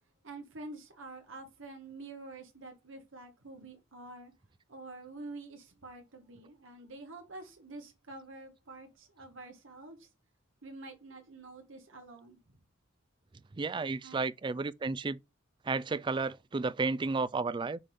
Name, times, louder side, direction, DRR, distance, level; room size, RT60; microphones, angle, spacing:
voice 1, 0.2-4.3 4.7-10.1 10.6-12.4 14.0-14.2, right 2 dB, 80° right, 1.4 m, -47 dB
voice 2, 13.6-15.2 15.7-17.8, right 3 dB, 25° right, 0.3 m, -32 dB
6.9 x 3.6 x 5.3 m
head